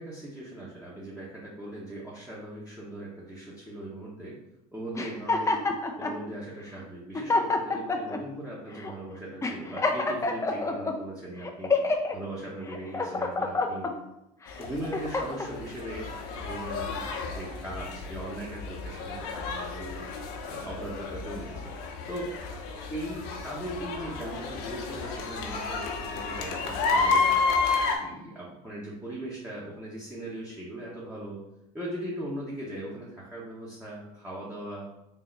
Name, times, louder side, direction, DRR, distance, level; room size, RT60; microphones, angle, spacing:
voice 1, 0.0-4.4 4.7-5.6 6.0-11.7 12.1-13.9 14.6-16.1 16.4-20.0 20.5-21.7 22.1-22.3 22.9-27.3 28.0-31.4 31.7-34.9, right 1 dB, 5° right, -6 dB, 1.1 m, -39 dB
sound 1, 4.9-6.2 6.8-6.9 7.1-8.2 8.8-8.9 9.4-10.9 11.4-12.1 12.7-13.9 14.5-15.5, left 3 dB, 15° left, 0.5 m, -27 dB
sound 2, 14.5-28.0, left 4 dB, 65° left, 0.8 m, -31 dB
3.7 x 2.8 x 4.0 m, 0.87 s
supercardioid pair, 95°, 20 cm